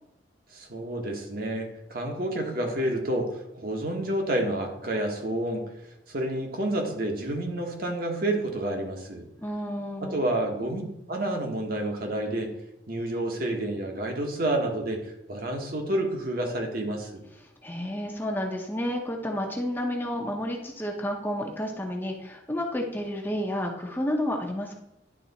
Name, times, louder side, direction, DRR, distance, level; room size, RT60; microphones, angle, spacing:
voice 1, 0.5-5.6 6.1-9.3 10.0-10.8 11.1-12.5 12.9-15.0 15.3-17.2, right 1 dB, 55° right, 2 dB, 1.2 m, -29 dB
voice 2, 9.4-10.3 17.6-24.8, left 1 dB, 10° left, 2 dB, 0.8 m, -31 dB
10.0 x 3.4 x 4.0 m, 0.84 s
head